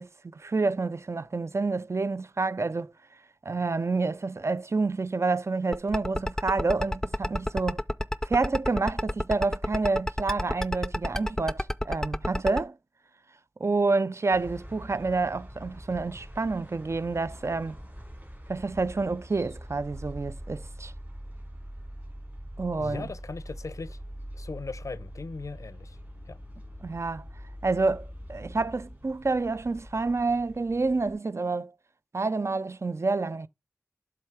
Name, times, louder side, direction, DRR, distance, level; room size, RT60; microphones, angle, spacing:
voice 1, 0.0-2.9 3.4-7.8 8.2-12.8 13.6-17.8 18.5-20.9 22.6-23.1 26.8-27.3 27.6-31.7 32.1-33.5, right 3 dB, 60° right, 0.4 m, -28 dB
sound 1, 5.7-12.6, left 1 dB, 10° left, 0.4 m, -28 dB
sound 2, 14.3-31.1, equal, 35° right, 3.3 m, -43 dB
voice 2, 22.8-24.0 24.3-26.0 26.3-26.4, left 4 dB, 80° left, 0.4 m, -38 dB
7.5 x 3.7 x 4.8 m
wide cardioid pair, 50°, 5 cm